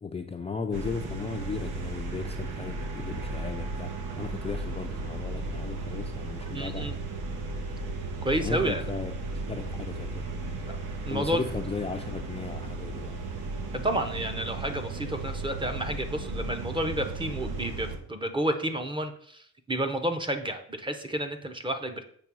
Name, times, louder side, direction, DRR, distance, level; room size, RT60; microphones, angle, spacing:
voice 1, 0.0-6.9 8.4-10.6 11.1-13.3, left 5 dB, 20° left, 3 dB, 0.4 m, -36 dB
sound 1, 0.7-18.0, right 3 dB, 90° right, 1.1 m, -35 dB
voice 2, 6.5-6.9 8.2-8.8 10.7-10.8 11.0-11.4 13.7-22.0, right 1 dB, 15° right, 6 dB, 0.7 m, -30 dB
7.3 x 3.3 x 6.1 m, 0.62 s
wide cardioid pair, 150°, 31 cm